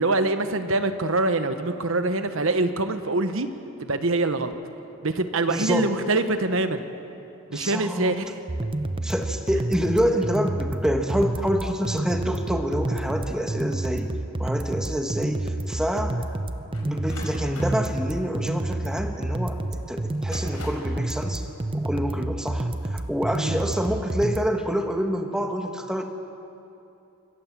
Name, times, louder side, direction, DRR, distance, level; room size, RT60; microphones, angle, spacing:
voice 1, 0.0-3.5 3.8-4.5 5.0-6.8 7.5-8.3 23.4-23.6, right 2 dB, 60° right, 9 dB, 1.2 m, -24 dB
voice 2, 5.5-5.9 7.5-8.2 9.0-16.2 16.8-19.6 19.9-21.5 21.7-26.0, equal, 5° right, 4 dB, 1.3 m, -27 dB
sound 1, 8.5-24.5, right 1 dB, 25° right, 0.6 m, -29 dB
sound 2, 16.7-19.5 20.1-21.0, left 2 dB, 75° left, 4.9 m, -42 dB
25.0 x 15.5 x 7.5 m, 2.8 s
head